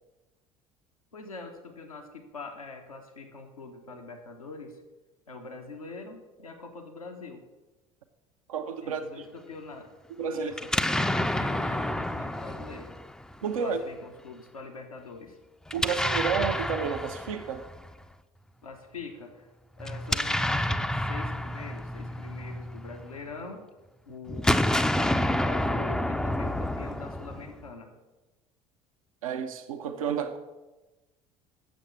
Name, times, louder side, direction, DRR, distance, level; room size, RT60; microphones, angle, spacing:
voice 1, 1.1-4.8 5.3-7.4 8.8-9.9 10.3-12.9 13.6-15.4 18.6-19.5 19.8-23.6 24.1-27.9, left 4 dB, 85° left, 3 dB, 1.2 m, -43 dB
voice 2, 8.5-9.2 10.2-10.5 13.4-13.8 15.7-17.7 29.2-30.4, right 6 dB, 75° right, 6 dB, 0.7 m, -31 dB
Explosion, 10.5-13.6 15.7-17.9 19.8-23.2 24.3-27.7, left 1 dB, 5° left, 0.5 m, -29 dB
8.0 x 7.2 x 6.8 m, 1.1 s
figure-of-eight pair, 60°, 18 cm